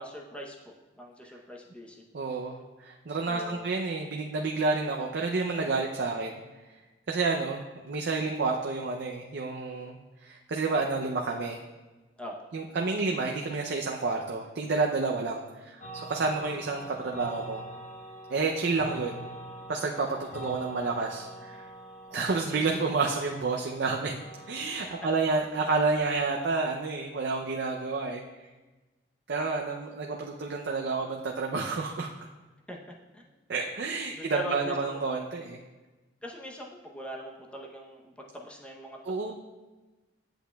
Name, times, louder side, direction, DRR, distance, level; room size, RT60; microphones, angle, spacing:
voice 1, 0.0-2.0 3.2-3.7 12.2-12.3 22.1-22.3 25.0-25.1 32.7-32.8 33.1-33.2 34.1-35.0 36.2-39.0, equal, 5° left, -2 dB, 0.7 m, -41 dB
voice 2, 2.1-6.3 7.1-11.6 12.5-17.6 18.3-19.3 19.7-21.7 22.1-24.2 24.5-28.2 29.3-32.1 33.5-35.6 39.1-39.3, right 3 dB, 65° right, 1 dB, 0.5 m, -30 dB
sound 1, 15.8-26.5, right 1 dB, 40° left, 1.1 m, -45 dB
8.4 x 7.9 x 2.3 m, 1.2 s
head